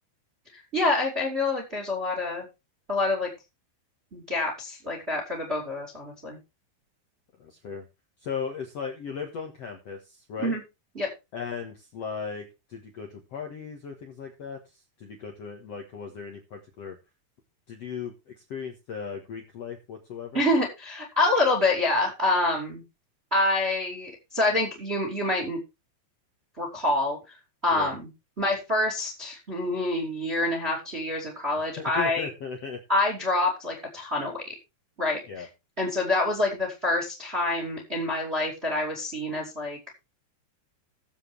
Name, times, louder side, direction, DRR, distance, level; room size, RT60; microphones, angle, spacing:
voice 1, 0.5-2.4 2.9-3.3 4.1-6.4 10.4-10.6 10.9-11.1 20.3-22.8 23.3-25.6 26.6-27.2 27.6-28.1 28.4-32.3 32.9-34.5 35.0-35.2 35.8-39.8, left 2 dB, 20° right, 1 dB, 2.1 m, -26 dB
voice 2, 7.4-7.8 8.2-10.6 11.3-17.0 17.7-20.4 27.7-27.9 31.8-32.8 35.3-35.5, left 6 dB, 70° left, 2 dB, 1.5 m, -37 dB
19.0 x 7.5 x 3.3 m, 0.27 s
omnidirectional pair, 5.1 m